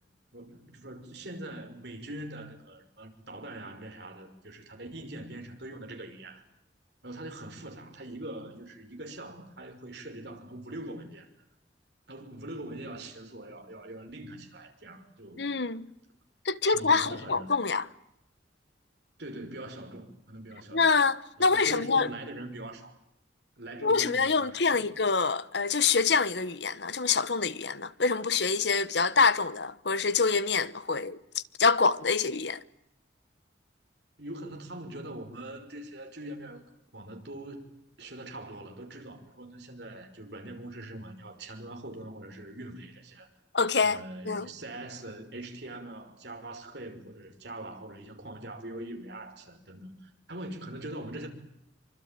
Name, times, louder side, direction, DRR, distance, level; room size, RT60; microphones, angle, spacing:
voice 1, 0.3-6.4 7.0-11.3 12.1-15.5 16.6-17.5 19.2-20.9 21.4-22.9 23.6-24.9 34.2-36.6 36.9-37.7 38.0-43.3 43.8-51.3, right 1 dB, 60° right, 5.7 m, -42 dB
voice 2, 15.4-15.9 16.4-17.8 20.7-22.1 23.8-32.6 43.5-44.5, left 4 dB, 65° left, 1.2 m, -26 dB
25.0 x 25.0 x 9.1 m
head